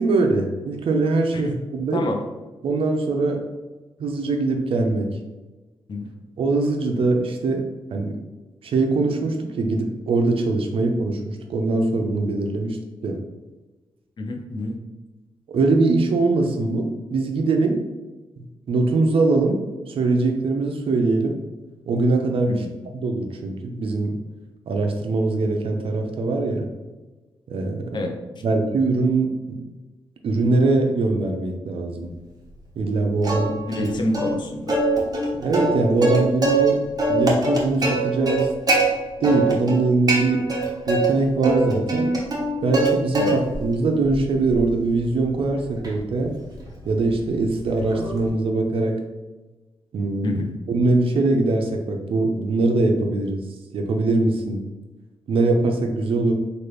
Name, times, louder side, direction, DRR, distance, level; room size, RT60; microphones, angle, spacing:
voice 1, 0.0-2.0 2.6-3.4 4.0-5.2 6.4-7.6 7.9-8.2 8.6-12.8 13.0-13.2 15.5-17.8 18.7-19.6 19.9-21.4 21.9-22.6 22.9-24.1 24.7-26.7 27.5-28.1 28.4-29.3 30.2-32.1 32.8-33.9 35.4-36.8 37.1-38.5 39.2-40.4 40.9-42.1 42.6-46.3 46.9-49.0 49.9-50.4 50.7-53.4 53.7-54.6 55.3-56.3, right 3 dB, 65° right, 4 dB, 0.5 m, -22 dB
voice 2, 14.2-14.7 22.5-22.7 27.9-28.1 33.7-34.7 43.2-43.4 50.2-50.5, left 2 dB, 50° left, 2 dB, 0.6 m, -27 dB
Plucked string instrument, 33.2-33.9 34.1-34.3 34.7-36.7 37.0-38.8 39.2-39.8 40.1-41.1 41.4-42.9 43.1-43.6 44.1-48.3, right 2 dB, 40° right, 0.9 m, -23 dB
3.2 x 2.4 x 3.1 m, 1.2 s
cardioid pair, 65°, 10 cm